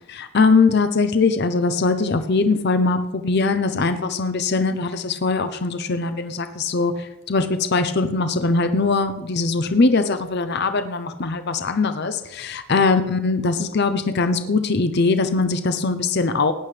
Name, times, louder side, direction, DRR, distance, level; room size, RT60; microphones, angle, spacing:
voice 1, 0.1-16.5, left 3 dB, 45° left, 9 dB, 0.6 m, -21 dB
17.5 x 10.5 x 3.3 m, 0.97 s
head